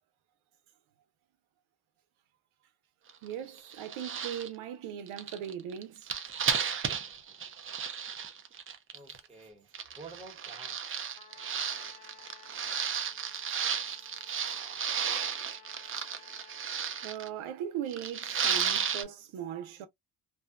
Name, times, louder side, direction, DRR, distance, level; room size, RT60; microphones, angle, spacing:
sound 1, 3.1-3.3 3.6-4.5 5.1-9.2 9.7-17.3 17.9-19.0, right 7 dB, 30° right, 0.4 m, -34 dB
voice 1, 3.2-6.1 17.0-19.9, right 9 dB, 75° right, 0.7 m, -39 dB
voice 2, 8.9-11.0, right 3 dB, 10° right, 1.0 m, -50 dB
Trumpet, 11.1-17.4, left 7 dB, 50° left, 1.3 m, -57 dB
2.7 x 2.2 x 2.3 m
cardioid pair, 115°, 50 cm